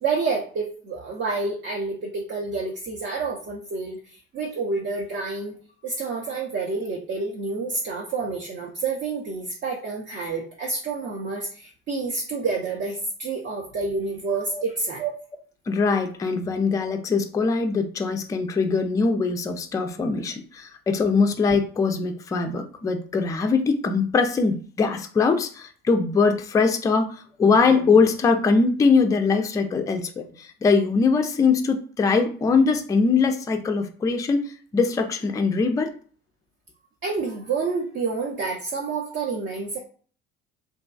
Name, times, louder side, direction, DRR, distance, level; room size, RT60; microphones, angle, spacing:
voice 1, 0.0-5.6 5.8-15.1 37.0-39.8, right 4 dB, 35° right, -1 dB, 0.6 m, -28 dB
voice 2, 15.7-27.1 27.4-35.9, left 4 dB, 10° left, 5 dB, 0.3 m, -22 dB
2.6 x 2.2 x 2.2 m, 0.43 s
figure-of-eight pair, 55°, 31 cm